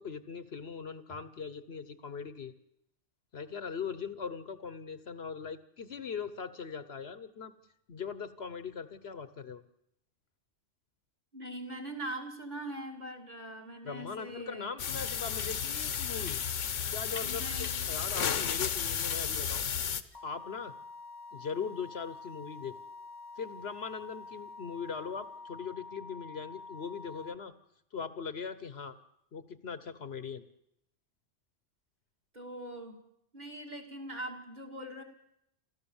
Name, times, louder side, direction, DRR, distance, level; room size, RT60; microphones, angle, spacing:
voice 1, 0.0-2.5 3.3-7.5 7.9-9.6 13.8-16.4 16.9-19.6 20.1-20.7 21.3-22.8 23.4-27.5 27.9-29.0 29.3-30.4, left 6 dB, 60° left, 13 dB, 1.2 m, -40 dB
voice 2, 11.3-14.7 17.2-18.0 32.3-33.0 33.3-35.0, right 1 dB, 35° right, 4 dB, 3.1 m, -42 dB
sound 1, 14.8-20.0, left 7 dB, 80° left, 1.3 m, -33 dB
sound 2, 20.1-27.4, left 3 dB, 20° left, 1.2 m, -47 dB
28.0 x 14.0 x 7.1 m, 0.77 s
omnidirectional pair, 1.3 m